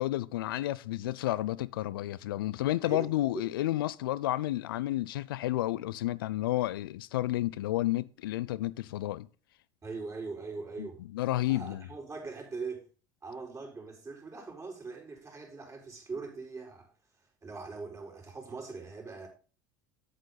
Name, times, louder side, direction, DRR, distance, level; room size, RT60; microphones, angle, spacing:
voice 1, 0.0-9.3 10.8-11.8, left 15 dB, 85° left, 0.4 m, -31 dB
voice 2, 9.8-11.0 11.5-12.8 13.2-16.9 17.4-19.3, right 4 dB, 30° right, 4.5 m, -41 dB
8.3 x 8.1 x 4.0 m
hypercardioid pair, 75°, 12 cm